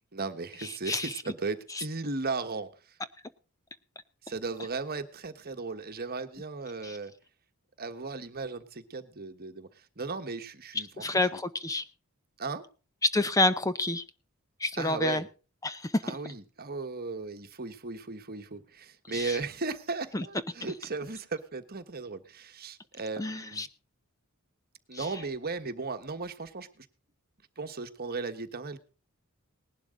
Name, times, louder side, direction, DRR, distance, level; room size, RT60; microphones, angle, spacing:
voice 1, 0.1-2.7 4.2-7.1 7.8-9.7 10.0-11.2 12.4-12.6 14.8-15.2 16.0-23.6 24.9-26.9 27.6-28.8, right 4 dB, 45° right, 8 dB, 1.4 m, -36 dB
voice 2, 10.7-11.8 13.1-14.0 14.6-15.2 15.6-16.2 19.1-19.4 20.1-20.3 23.2-23.7 24.9-25.1, left 2 dB, 15° left, 12 dB, 0.6 m, -29 dB
19.0 x 11.5 x 3.8 m, 0.36 s
head